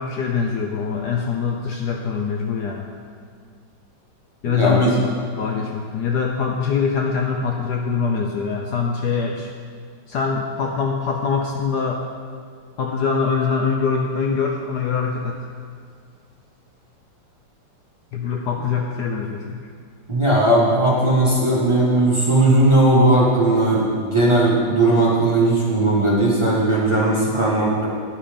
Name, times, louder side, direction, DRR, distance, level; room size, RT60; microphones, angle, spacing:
voice 1, 0.0-2.9 4.4-9.5 10.1-12.0 12.8-15.4 18.1-19.6, left 5 dB, 70° left, 2 dB, 1.1 m, -23 dB
voice 2, 4.4-4.9 20.1-27.9, right 1 dB, 15° right, -6 dB, 1.3 m, -17 dB
10.0 x 5.5 x 5.1 m, 2.1 s
omnidirectional pair, 2.1 m